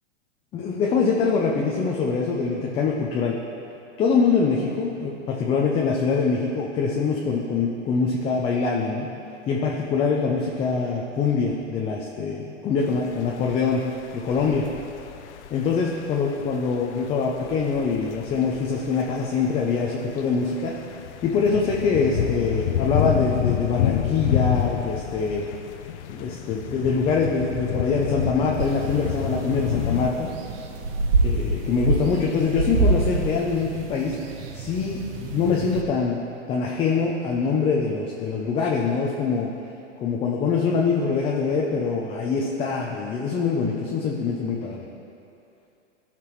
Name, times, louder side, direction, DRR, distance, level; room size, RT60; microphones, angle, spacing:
voice 1, 0.5-3.4 4.0-9.1 9.5-13.8 14.1-14.7 15.5-20.8 21.2-25.5 26.1-30.3 31.2-34.2 34.5-36.2 36.5-39.5 40.0-44.9, left 5 dB, 15° left, -2 dB, 0.5 m, -24 dB
sound 1, 12.8-30.1, left 11 dB, 65° left, 0.6 m, -29 dB
sound 2, 28.6-35.8, right 3 dB, 50° right, 1.0 m, -27 dB
15.0 x 5.8 x 3.1 m, 2.8 s
hypercardioid pair, 130°, 37 cm